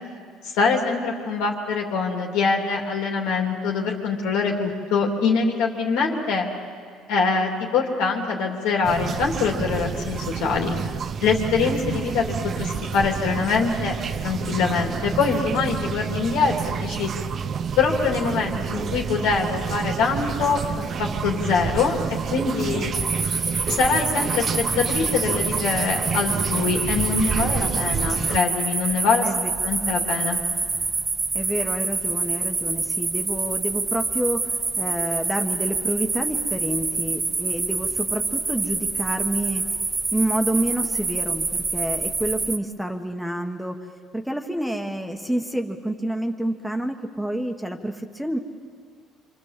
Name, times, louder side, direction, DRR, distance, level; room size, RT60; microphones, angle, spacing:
voice 1, 0.4-6.5 7.1-10.7 11.2-14.0 14.2-17.1 17.8-22.0 22.3-22.9 23.7-24.4 24.8-29.3 29.6-30.4, left 5 dB, 85° left, 1 dB, 3.0 m, -24 dB
sound 1, 8.8-28.4, right 6 dB, 40° right, 0.7 m, -29 dB
sound 2, 22.9-42.6, right 4 dB, 25° right, 1.0 m, -27 dB
voice 2, 31.3-39.7 40.1-43.8 44.1-48.4, right 1 dB, ahead, 5 dB, 1.4 m, -28 dB
26.5 x 25.5 x 7.6 m, 2.1 s
cardioid pair, 110°, 0 cm